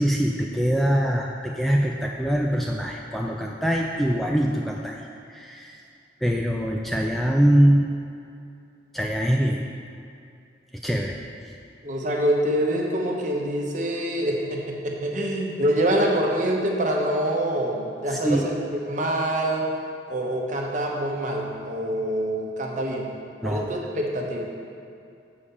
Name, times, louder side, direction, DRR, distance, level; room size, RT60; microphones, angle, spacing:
voice 1, 0.0-5.8 6.2-7.9 8.9-9.6 10.7-11.2 18.1-18.5 23.4-23.7, equal, ahead, 0 dB, 0.3 m, -23 dB
voice 2, 11.8-19.7 20.1-23.2 23.4-24.4, right 1 dB, 45° right, -1 dB, 1.0 m, -25 dB
7.2 x 4.9 x 6.9 m, 2.5 s
head